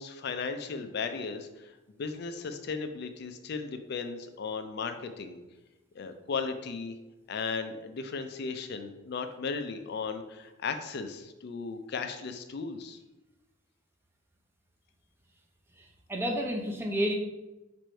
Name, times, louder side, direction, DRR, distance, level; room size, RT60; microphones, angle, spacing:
voice 1, 0.0-1.7 2.0-5.4 6.0-7.0 7.3-13.0, left 5 dB, 50° left, 8 dB, 0.4 m, -36 dB
voice 2, 15.8-17.1, equal, 10° right, 1 dB, 0.6 m, -31 dB
4.7 x 2.6 x 4.3 m, 1.0 s
head